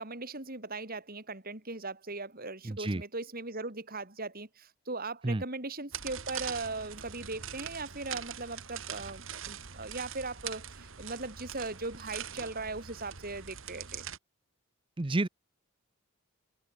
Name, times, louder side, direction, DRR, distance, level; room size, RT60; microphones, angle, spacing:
voice 1, 0.0-14.0, right 3 dB, 40° right, 3.7 m, -39 dB
voice 2, 2.6-3.0 5.2-5.4 15.0-15.3, right 2 dB, 25° right, 0.6 m, -30 dB
sound 1, 5.9-14.2, right 8 dB, 60° right, 2.4 m, -42 dB
head